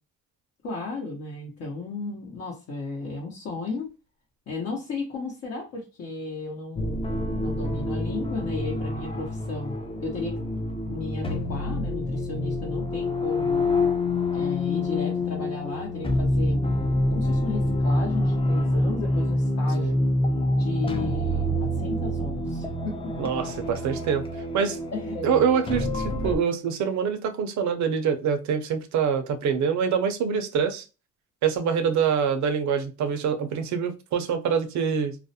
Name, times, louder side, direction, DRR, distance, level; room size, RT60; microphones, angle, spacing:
voice 1, 0.6-3.9 4.5-7.0 7.4-9.7 10.0-10.4 10.9-13.6 14.3-20.0 20.6-23.3 24.9-25.4, left 3 dB, 55° left, -2 dB, 0.8 m, -34 dB
sound 1, 6.7-26.4, left 1 dB, 20° left, 0.5 m, -26 dB
voice 2, 23.2-24.2 24.5-24.8 25.2-30.8 31.4-35.2, right 7 dB, 70° right, 7 dB, 0.6 m, -25 dB
2.4 x 2.1 x 2.7 m, 0.31 s
cardioid pair, 90°, 30 cm